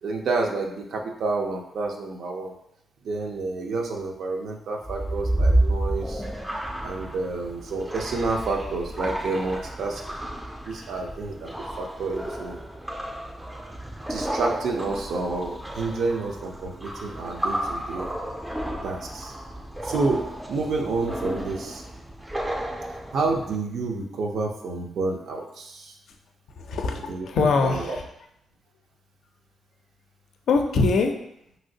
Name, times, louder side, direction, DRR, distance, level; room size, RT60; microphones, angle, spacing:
voice 1, 0.0-2.6 3.0-6.2 6.8-10.0 10.7-11.5 11.8-12.6 14.1-18.1 18.8-19.3 19.8-21.8 23.1-25.9 27.1-27.3 27.6-28.0, right 3 dB, 75° right, 1 dB, 0.4 m, -29 dB
sound 1, 4.8-23.6, right 1 dB, 10° right, 0.3 m, -31 dB
voice 2, 26.6-28.0 30.5-31.1, left 4 dB, 75° left, 4 dB, 0.4 m, -23 dB
3.0 x 2.8 x 2.6 m, 0.77 s
cardioid pair, 100°, 0 cm